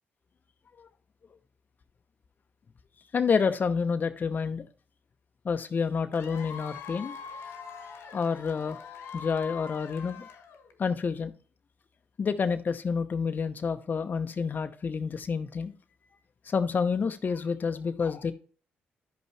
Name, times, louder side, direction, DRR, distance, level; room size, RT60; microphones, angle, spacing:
voice 1, 3.1-4.7 5.4-7.2 8.1-8.8 9.1-10.3 10.8-11.3 12.2-15.7 16.4-18.3, left 5 dB, 50° left, 0.8 m, -28 dB
Cheering / Applause / Crowd, 6.1-10.8, left 6 dB, 75° left, 1.2 m, -43 dB
12.5 x 5.4 x 3.3 m
supercardioid pair, 55°, 4 cm